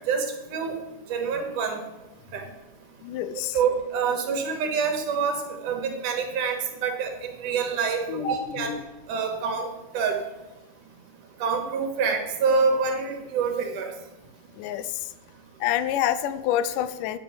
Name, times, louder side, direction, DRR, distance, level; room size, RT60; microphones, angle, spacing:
voice 1, 0.1-0.7 1.1-1.8 2.3-2.4 3.5-8.8 9.1-9.7 9.9-10.2 11.4-13.9, right 5 dB, 80° right, 4 dB, 2.9 m, -26 dB
voice 2, 3.0-3.6 8.1-8.8 14.6-15.0 15.6-17.2, left 11 dB, 85° left, 14 dB, 2.2 m, -27 dB
10.0 x 6.6 x 6.9 m, 1.0 s
omnidirectional pair, 3.6 m